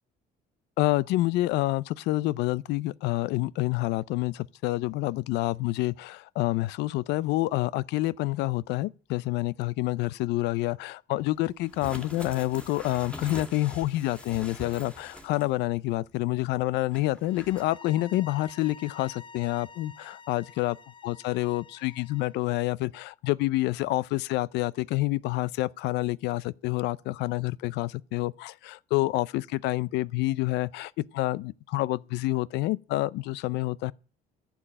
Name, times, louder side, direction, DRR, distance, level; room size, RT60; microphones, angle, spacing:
voice 1, 0.8-20.7 21.0-33.9, left 18 dB, 85° left, 0.6 m, -28 dB
sound 1, 11.6-15.6 15.9-16.0 16.9-17.6, left 1 dB, 5° left, 2.4 m, -43 dB
sound 2, 17.2-22.4, left 5 dB, 30° left, 0.8 m, -50 dB
11.5 x 7.1 x 8.8 m
cardioid pair, 110°, 17 cm